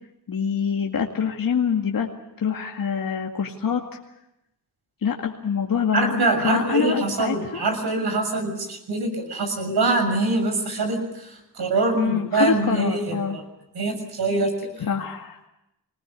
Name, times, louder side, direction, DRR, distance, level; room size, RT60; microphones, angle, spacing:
voice 1, 0.3-2.1 2.4-3.8 5.0-7.6 11.9-13.4 14.8-15.4, left 6 dB, 55° left, 1 dB, 2.2 m, -25 dB
voice 2, 5.9-13.4 13.7-14.5, right 2 dB, 70° right, 6 dB, 6.8 m, -24 dB
23.5 x 20.0 x 8.3 m, 0.87 s
cardioid pair, 60°, 40 cm